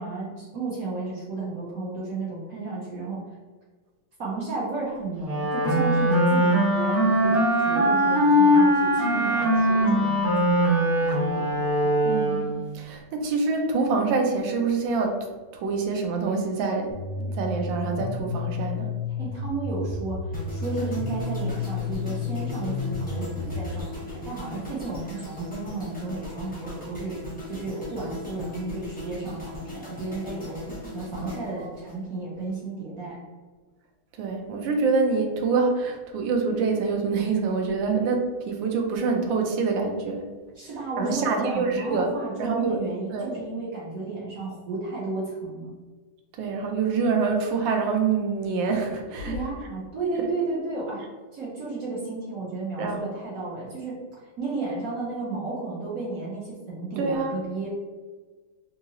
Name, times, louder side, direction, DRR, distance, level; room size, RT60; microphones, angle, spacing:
voice 1, 0.0-3.2 4.2-11.9 19.2-27.2 27.5-33.2 40.5-45.8 49.3-51.0 51.3-57.7, right 3 dB, 60° right, -6 dB, 0.9 m, -33 dB
Wind instrument woodwind instrument, 5.2-12.6, equal, 40° right, 1.7 m, -21 dB
voice 2, 12.0-15.3 15.6-18.9 31.2-31.3 34.2-40.3 41.0-42.1 42.4-42.8 43.1-43.4 46.4-49.4 52.8-53.0 57.0-57.3, right 4 dB, 75° right, 3 dB, 1.2 m, -26 dB
sound 1, 16.9-23.8, left 4 dB, 75° left, 1.1 m, -31 dB
sound 2, 20.3-32.5 32.8-33.1, left 2 dB, 10° left, 0.4 m, -39 dB
3.6 x 2.8 x 2.8 m, 1.4 s
omnidirectional pair, 2.3 m